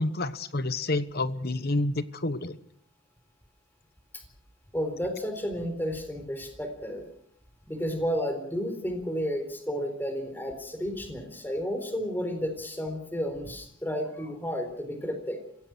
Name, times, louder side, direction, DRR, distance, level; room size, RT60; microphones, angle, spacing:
voice 1, 0.0-2.5, left 2 dB, 50° left, 13 dB, 1.1 m, -29 dB
voice 2, 4.7-7.1 7.7-15.4, equal, 10° left, 6 dB, 4.0 m, -32 dB
25.5 x 16.5 x 6.3 m, 0.66 s
head